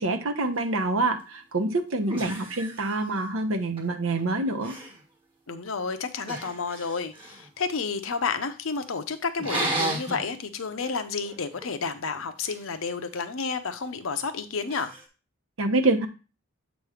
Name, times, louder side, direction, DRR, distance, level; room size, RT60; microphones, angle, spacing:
voice 1, 0.0-4.7 15.6-16.1, right 2 dB, 75° right, 0.9 m, -26 dB
sound 1, 1.4-1.5 2.1-3.4 3.8-4.2 4.5-5.0 6.3-7.5 9.4-10.2 10.7-10.9 11.2-12.6 14.7-15.1, right 2 dB, 25° right, 1.2 m, -33 dB
voice 2, 5.5-14.9, left 5 dB, 70° left, 0.7 m, -31 dB
7.7 x 3.1 x 4.9 m
head